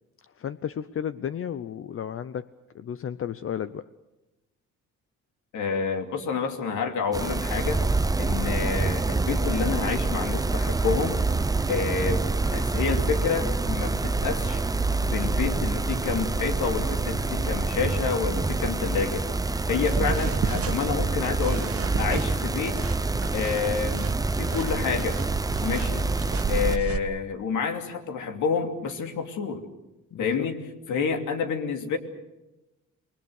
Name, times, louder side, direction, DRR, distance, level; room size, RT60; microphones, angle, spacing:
voice 1, 0.4-2.5 2.7-3.9 30.1-30.5, left 8 dB, 45° left, 14 dB, 0.7 m, -33 dB
voice 2, 5.5-7.8 8.2-11.2 11.7-12.2 12.5-14.6 15.0-19.3 19.7-22.8 23.3-25.2 25.6-26.1 26.5-29.6 30.2-32.0, left 6 dB, 75° left, 5 dB, 2.9 m, -29 dB
sound 1, 7.1-26.8, right 3 dB, 10° right, 0.7 m, -27 dB
sound 2, 7.6-18.4, right 4 dB, 30° right, 2.1 m, -36 dB
sound 3, 19.7-27.0, right 6 dB, 50° right, 1.9 m, -34 dB
27.5 x 21.0 x 6.6 m, 1.0 s
cardioid pair, 90°, 30 cm